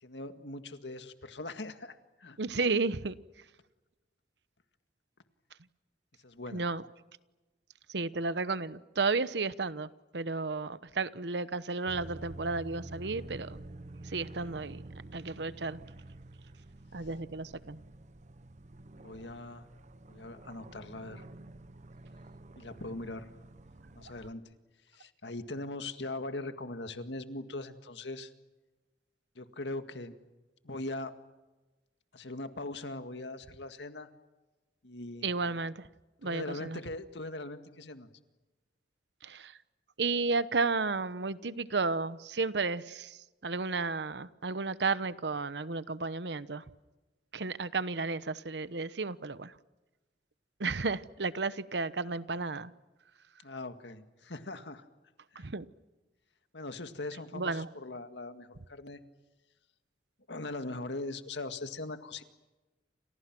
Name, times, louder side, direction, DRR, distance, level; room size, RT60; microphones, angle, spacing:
voice 1, 0.0-2.4 6.2-6.6 19.0-19.7 20.1-21.2 22.6-23.3 24.0-24.4 24.9-28.3 29.4-30.1 30.6-31.1 32.1-34.1 34.8-35.3 36.2-38.1 53.4-54.8 55.3-55.5 56.5-59.0 60.3-62.2, left 2 dB, 80° left, 8 dB, 1.9 m, -41 dB
voice 2, 2.4-3.1 6.5-6.8 7.9-13.6 14.0-14.8 15.1-15.8 16.9-17.8 35.2-35.9 36.2-36.8 39.2-39.6 40.0-46.6 47.3-49.5 50.6-52.7 55.3-55.7 57.3-57.7, right 3 dB, 70° right, 15 dB, 1.0 m, -33 dB
sound 1, 11.8-24.3, right 2 dB, 40° right, 0.9 m, -49 dB
29.5 x 27.5 x 6.1 m, 1.1 s
head